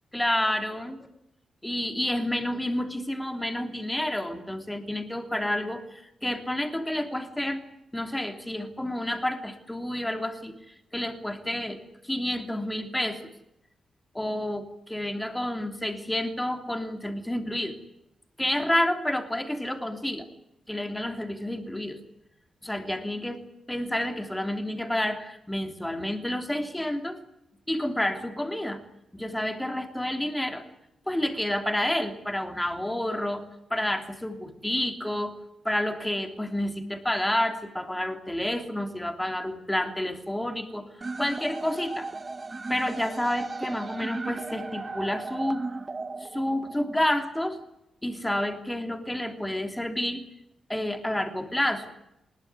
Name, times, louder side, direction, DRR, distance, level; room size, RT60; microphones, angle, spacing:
voice 1, 0.1-1.0 1.6-7.6 7.9-11.8 12.0-13.2 14.1-17.8 18.4-20.3 20.7-22.0 22.6-27.2 27.7-28.8 29.1-30.6 31.1-33.4 33.7-35.3 35.6-40.9 41.2-42.1 42.7-45.6 46.2-47.6 48.0-50.2 50.7-51.9, left 1 dB, 5° left, 6 dB, 3.1 m, -29 dB
sound 1, 41.0-47.0, right 3 dB, 25° right, 1.4 m, -36 dB
23.5 x 21.5 x 9.6 m, 0.83 s
wide cardioid pair, 155°, 0 cm